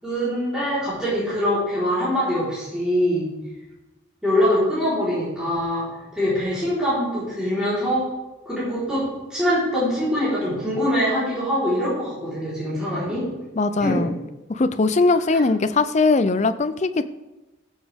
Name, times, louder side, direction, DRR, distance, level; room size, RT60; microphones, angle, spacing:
voice 1, 0.0-3.3 4.2-8.0 8.5-13.3 13.8-14.0 15.3-15.4, equal, 5° right, -11 dB, 4.1 m, -23 dB
voice 2, 13.6-14.2 14.5-17.0, left 3 dB, 35° left, 11 dB, 0.4 m, -20 dB
15.5 x 7.2 x 3.6 m, 1.1 s
head